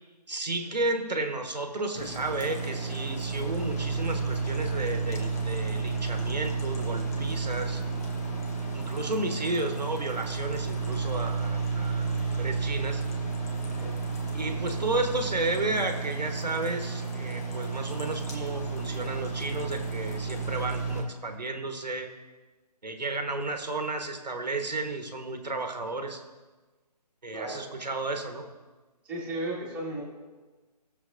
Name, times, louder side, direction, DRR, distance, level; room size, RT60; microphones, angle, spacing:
voice 1, 0.3-7.8 8.7-13.0 14.3-22.1 22.8-26.2 27.2-28.5, right 2 dB, 80° right, 5 dB, 1.3 m, -32 dB
sound 1, 2.0-21.0, right 4 dB, 20° left, 1.0 m, -32 dB
voice 2, 13.6-13.9 27.3-27.6 29.0-30.0, right 1 dB, 5° right, -7 dB, 1.8 m, -35 dB
18.0 x 6.8 x 2.6 m, 1.3 s
figure-of-eight pair, 155°, 21 cm